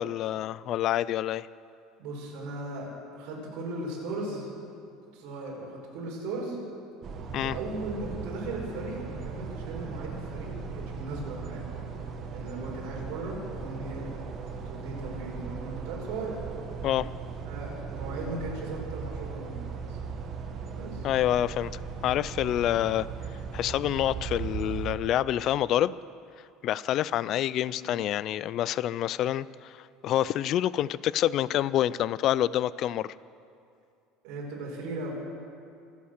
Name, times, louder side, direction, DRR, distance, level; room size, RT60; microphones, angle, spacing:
voice 1, 0.0-1.5 7.3-7.5 16.8-17.1 21.0-21.7 22.0-23.1 23.5-26.0 26.6-33.1, left 12 dB, 40° left, 19 dB, 0.3 m, -27 dB
voice 2, 2.0-4.6 5.1-6.6 7.4-11.7 12.3-14.3 14.6-16.4 17.5-20.0 20.7-21.1 27.6-27.8 34.2-35.1, right 2 dB, 60° right, -3 dB, 5.3 m, -37 dB
sound 1, 7.0-25.0, right 6 dB, 35° right, 1.3 m, -38 dB
25.5 x 8.6 x 6.6 m, 2.5 s
cardioid pair, 160°, 0 cm